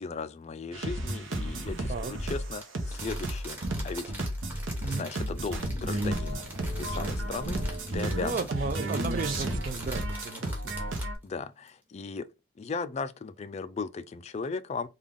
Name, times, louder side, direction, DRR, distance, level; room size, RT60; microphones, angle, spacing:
voice 1, 0.0-4.1 4.8-6.4 6.8-8.4 11.2-12.3 12.6-14.9, left 4 dB, 35° left, 0.3 m, -37 dB
sound 1, 0.7-11.1, right 1 dB, 65° right, 0.8 m, -33 dB
Crumpling crinkling, 2.6-11.2 11.7-11.8, equal, 10° right, 1.0 m, -45 dB
sound 2, 5.3-10.5, equal, 20° left, 0.8 m, -44 dB
voice 2, 8.2-10.8, right 4 dB, 40° right, 0.4 m, -34 dB
3.6 x 2.3 x 3.4 m
head